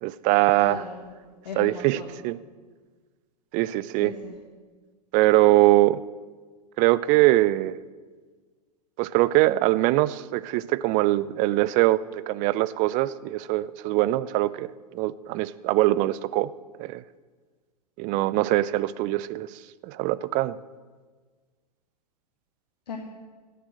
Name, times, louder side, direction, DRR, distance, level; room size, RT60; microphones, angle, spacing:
voice 1, 0.0-0.8 1.6-2.0 2.2-2.4 3.5-4.1 5.1-6.0 6.8-7.8 9.0-12.0 12.3-14.7 14.9-16.5 16.8-17.0 18.0-19.5 19.8-20.6, right 17 dB, 40° right, 17 dB, 0.5 m, -22 dB
voice 2, 0.7-1.1 1.4-2.1 4.0-4.3 22.9-23.0, left 5 dB, 75° left, 0 dB, 1.8 m, -37 dB
15.5 x 6.7 x 7.6 m, 1.5 s
hypercardioid pair, 100°, 21 cm